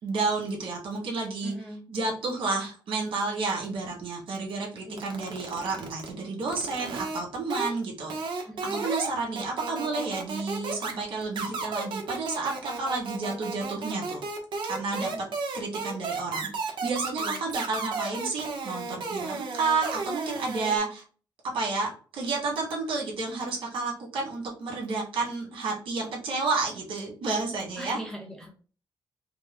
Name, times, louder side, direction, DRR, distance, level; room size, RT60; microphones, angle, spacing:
voice 1, 0.0-1.5 1.9-14.2 14.6-15.1 15.5-21.0 21.5-28.0, right 3 dB, 85° right, -2 dB, 1.9 m, -31 dB
voice 2, 1.4-1.8 4.8-5.0 8.5-8.9 15.0-15.3 17.2-17.4 17.8-17.9 27.8-28.5, right 1 dB, 5° left, 0 dB, 0.8 m, -40 dB
sound 1, 5.0-6.1 6.5-7.2 7.5-7.7 8.1-9.1 9.4-20.8, right 4 dB, 65° right, 1.0 m, -33 dB
4.7 x 2.2 x 3.8 m, 0.39 s
wide cardioid pair, 180°, 9 cm